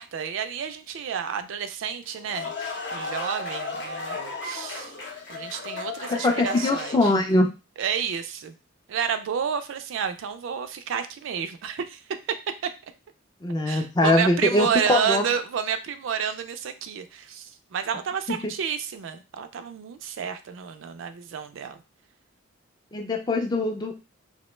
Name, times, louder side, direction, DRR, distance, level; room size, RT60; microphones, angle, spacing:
voice 1, 0.0-4.9 5.3-7.1 7.8-8.5 8.9-12.0 13.7-21.8, right 7 dB, 70° right, 9 dB, 0.3 m, -30 dB
sound 1, 2.0-7.4, left 3 dB, 60° left, 0.7 m, -34 dB
voice 2, 6.1-7.5 13.4-15.3 18.3-18.5 22.9-23.9, left 2 dB, 20° left, 4 dB, 0.3 m, -22 dB
2.8 x 2.1 x 3.0 m, 0.29 s
head